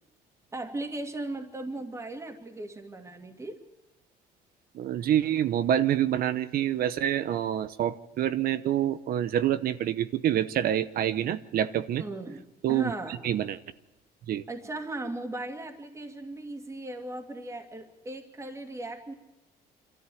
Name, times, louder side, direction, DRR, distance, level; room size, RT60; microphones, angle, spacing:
voice 1, 0.5-3.6 12.0-13.2 14.5-19.1, right 2 dB, 15° right, 4 dB, 2.4 m, -37 dB
voice 2, 4.7-12.1 12.6-12.9 13.2-13.6 14.3-14.4, right 11 dB, 60° right, 13 dB, 0.9 m, -27 dB
25.0 x 13.5 x 9.3 m, 1.0 s
cardioid pair, 110°, 17 cm